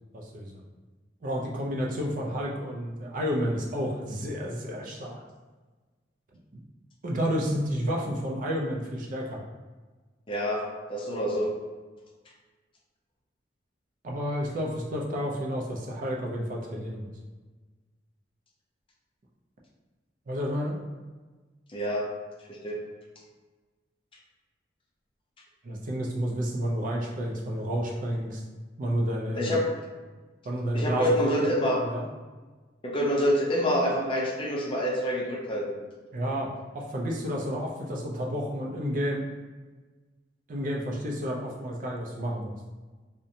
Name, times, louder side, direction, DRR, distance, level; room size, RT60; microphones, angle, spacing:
voice 1, 0.1-0.6 1.2-5.2 7.0-9.4 14.0-17.1 20.3-20.8 25.6-28.4 28.8-29.6 30.5-31.5 31.8-32.1 36.1-39.3 40.5-42.6, equal, 45° right, -1 dB, 0.4 m, -30 dB
voice 2, 10.3-10.6 10.9-11.5 21.7-22.1 22.5-22.8 29.4-29.7 30.7-31.9 32.8-35.8, equal, 30° left, -2 dB, 0.4 m, -26 dB
2.5 x 2.1 x 2.7 m, 1.3 s
head